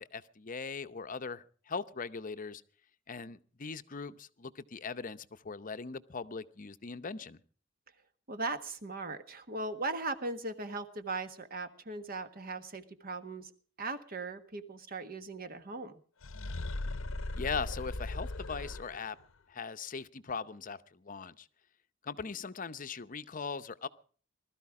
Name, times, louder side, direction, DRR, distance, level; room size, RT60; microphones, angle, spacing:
voice 1, 0.0-2.6 3.1-7.4 17.3-19.2 19.5-21.5 22.0-23.9, left 5 dB, 40° left, 11 dB, 0.7 m, -40 dB
voice 2, 8.3-13.5 13.8-15.9, right 3 dB, 45° right, 9 dB, 1.5 m, -38 dB
sound 1, 16.2-19.2, left 2 dB, 75° left, 0.8 m, -38 dB
20.0 x 13.0 x 4.8 m, 0.43 s
head